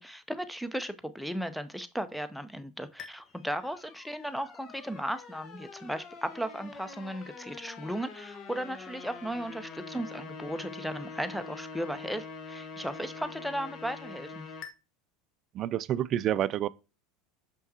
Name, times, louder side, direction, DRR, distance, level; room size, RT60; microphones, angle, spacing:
voice 1, 0.0-14.5, equal, ahead, 0.7 m, -36 dB
sound 1, 3.0-14.7, left 5 dB, 40° left, 1.0 m, -45 dB
voice 2, 15.5-16.7, right 11 dB, 40° right, 0.3 m, -28 dB
6.2 x 5.6 x 2.8 m
figure-of-eight pair, 75°, 0 cm